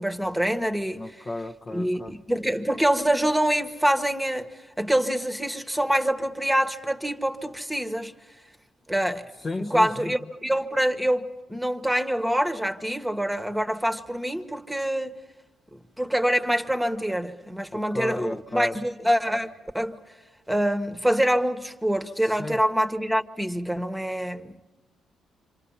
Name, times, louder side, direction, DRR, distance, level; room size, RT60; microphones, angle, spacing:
voice 1, 0.0-1.0 1.7-4.5 4.8-8.1 8.9-9.3 9.6-15.2 15.7-20.0 20.5-24.6, equal, 5° right, 1.4 m, -25 dB
voice 2, 1.0-2.1 9.4-10.1 17.7-18.8 22.2-22.6, left 2 dB, 35° left, 0.9 m, -33 dB
27.0 x 26.5 x 5.7 m
cardioid pair, 90°, 0 cm